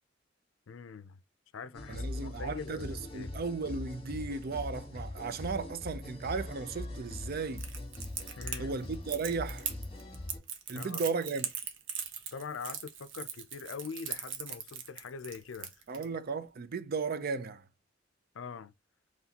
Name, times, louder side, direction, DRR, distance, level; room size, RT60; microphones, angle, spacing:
voice 1, 0.7-1.2 1.5-3.4 8.4-8.8 10.7-11.1 12.3-15.8 18.3-18.7, left 5 dB, 75° left, 0.5 m, -43 dB
sound 1, 1.7-10.4, left 1 dB, 30° left, 1.4 m, -42 dB
voice 2, 1.9-7.7 8.6-9.7 10.7-11.5 15.9-17.6, right 4 dB, 50° right, 0.5 m, -35 dB
Crackle, 7.6-16.0, right 7 dB, 70° right, 0.9 m, -40 dB
4.0 x 3.1 x 2.8 m
head